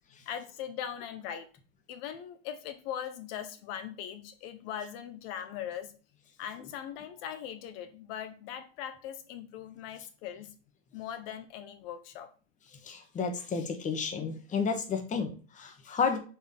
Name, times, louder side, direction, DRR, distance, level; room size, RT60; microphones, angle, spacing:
voice 1, 0.3-1.5 1.9-5.9 6.4-10.5 10.9-12.3, left 9 dB, 70° left, 9 dB, 1.0 m, -40 dB
voice 2, 12.8-16.2, left 5 dB, 25° left, 5 dB, 1.2 m, -31 dB
4.6 x 4.5 x 5.4 m, 0.37 s
supercardioid pair, 140°, 30 cm